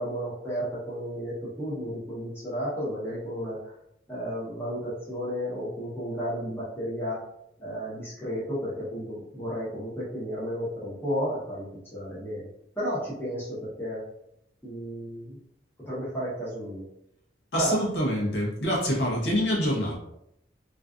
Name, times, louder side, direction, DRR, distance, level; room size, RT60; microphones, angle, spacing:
voice 1, 0.0-3.6 4.1-7.2 7.6-12.5 12.8-14.0 14.6-15.4 15.8-16.9 17.5-17.7, equal, 10° left, -8 dB, 0.9 m, -33 dB
voice 2, 17.5-20.0, equal, 70° left, -3 dB, 0.7 m, -26 dB
2.4 x 2.3 x 2.4 m, 0.79 s
head